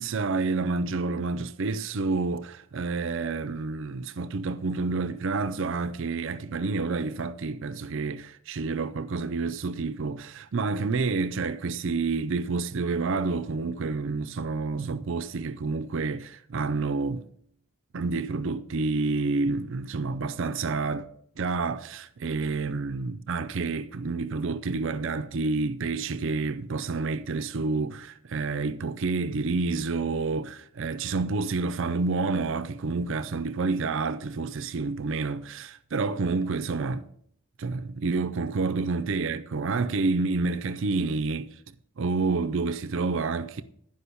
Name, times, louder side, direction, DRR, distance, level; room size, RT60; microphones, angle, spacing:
voice 1, 0.0-17.2 17.9-21.1 21.4-37.1 37.6-41.5 42.0-43.6, right 3 dB, 60° right, 0.5 m, -29 dB
11.5 x 5.2 x 6.8 m
head